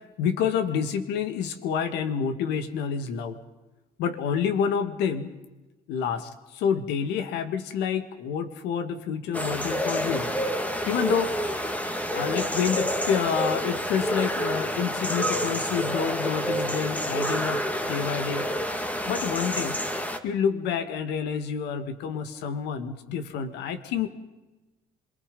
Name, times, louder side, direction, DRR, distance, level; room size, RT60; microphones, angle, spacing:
voice 1, 0.2-3.4 4.0-5.3 5.9-10.3 10.9-11.3 12.1-18.5 19.1-19.7 20.2-24.1, left 7 dB, 90° left, 9 dB, 2.0 m, -28 dB
sound 1, 9.3-20.2, equal, 10° left, 1.9 m, -28 dB
27.0 x 23.5 x 5.5 m, 1.1 s
cardioid pair, 110°, 17 cm